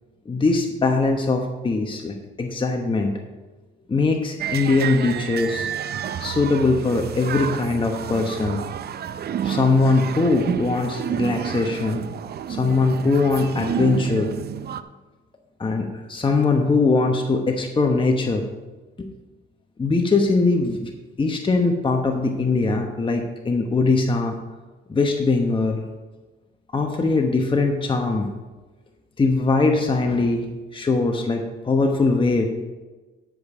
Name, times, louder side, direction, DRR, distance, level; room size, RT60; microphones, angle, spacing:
voice 1, 0.3-3.1 3.9-5.7 6.2-8.6 9.4-12.0 12.5-14.3 15.6-18.4 19.0-19.1 19.8-20.9 21.2-24.4 24.9-25.8 26.7-28.3 29.2-30.5 30.7-32.5, left 3 dB, 25° left, 3 dB, 1.1 m, -21 dB
sound 1, 4.4-14.8, right 9 dB, 55° right, 0.6 m, -30 dB
13.0 x 5.4 x 5.1 m, 1.2 s
cardioid pair, 90°, 20 cm